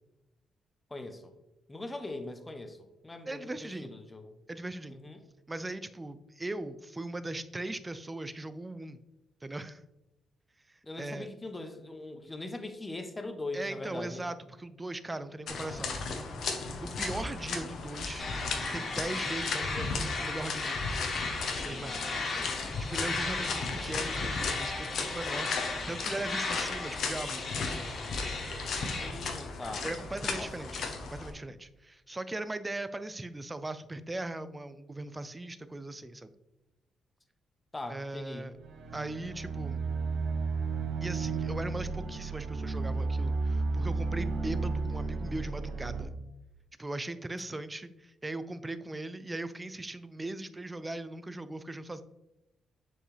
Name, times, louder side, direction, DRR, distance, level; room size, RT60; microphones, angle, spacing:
voice 1, 0.9-1.3 1.7-2.8 3.0-4.3 4.9-5.2 10.8-14.2 21.6-22.8 28.9-29.9 30.3-30.5 37.7-38.5, left 2 dB, 20° left, 7 dB, 1.0 m, -41 dB
voice 2, 3.3-3.9 4.5-5.0 5.5-9.0 9.4-9.8 10.7-11.3 13.5-16.2 16.8-18.3 18.7-21.2 21.6-22.2 22.9-27.9 29.8-36.3 37.9-38.5 38.9-39.8 41.0-46.1 46.8-52.0, right 2 dB, 20° right, 13 dB, 0.5 m, -39 dB
sound 1, 15.5-31.3, left 4 dB, 65° left, 1.1 m, -36 dB
sound 2, 18.2-29.1, left 3 dB, 50° left, 2.0 m, -36 dB
sound 3, 38.6-46.1, right 4 dB, 75° right, 0.9 m, -32 dB
7.3 x 4.6 x 3.4 m, 0.96 s
cardioid pair, 80°, 0 cm